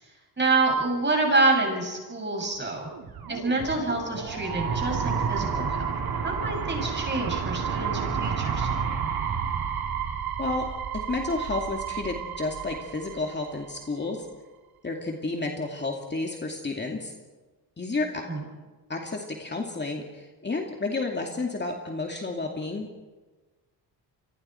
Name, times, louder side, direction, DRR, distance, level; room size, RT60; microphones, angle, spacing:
voice 1, 0.4-2.9 3.3-6.0 6.2-9.0 18.2-18.4, right 3 dB, 25° right, 1 dB, 7.2 m, -27 dB
sound 1, 2.8-13.8, right 6 dB, 55° right, 3.4 m, -30 dB
voice 2, 10.9-14.3 14.8-17.1 17.8-18.3 18.9-22.9, left 3 dB, 25° left, 1 dB, 2.5 m, -31 dB
29.0 x 24.0 x 4.6 m, 1.3 s
cardioid pair, 105°, 43 cm